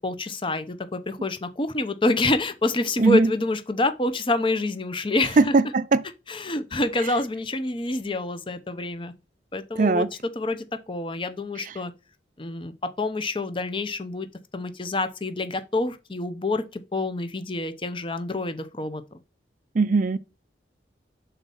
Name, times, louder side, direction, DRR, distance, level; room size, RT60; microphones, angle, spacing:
voice 1, 0.0-5.5 6.3-9.1 9.5-10.1 10.4-11.9 12.4-14.3 14.5-19.2, left 2 dB, 25° left, 0.7 m, -27 dB
voice 2, 3.0-3.3 5.4-6.0 9.8-10.1 11.6-11.7 19.7-20.2, right 3 dB, 45° right, 0.4 m, -20 dB
5.9 x 4.1 x 5.4 m
head